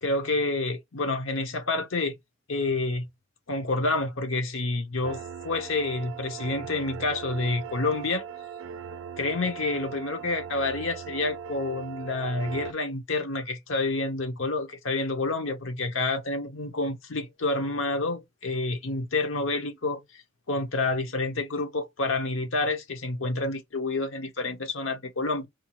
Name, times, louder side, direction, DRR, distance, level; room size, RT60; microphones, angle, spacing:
voice 1, 0.0-2.2 2.5-3.1 3.5-8.2 9.2-20.2 20.5-25.5, left 2 dB, 70° left, 1.0 m, -28 dB
sound 1, 5.0-12.7, right 8 dB, 70° right, 0.4 m, -39 dB
4.4 x 2.5 x 3.0 m
head